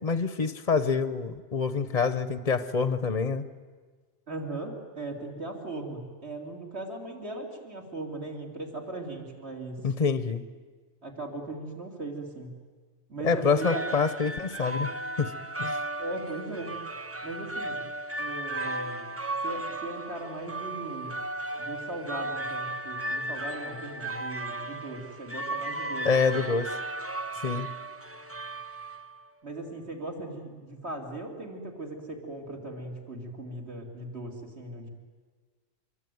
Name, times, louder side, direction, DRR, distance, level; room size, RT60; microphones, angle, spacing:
voice 1, 0.0-3.5 9.8-10.4 13.2-14.9 15.2-15.3 15.6-15.8 26.0-26.8 27.3-27.7, left 5 dB, 35° left, 12 dB, 0.9 m, -26 dB
voice 2, 4.3-9.8 11.0-12.6 13.1-13.9 16.0-16.8 17.2-17.8 18.2-19.1 19.4-21.1 21.6-26.4 29.4-34.9, right 2 dB, 55° right, 1 dB, 3.9 m, -38 dB
sound 1, 13.4-29.3, right 1 dB, 15° right, 0.6 m, -35 dB
26.0 x 22.5 x 9.5 m, 1.5 s
omnidirectional pair, 1.3 m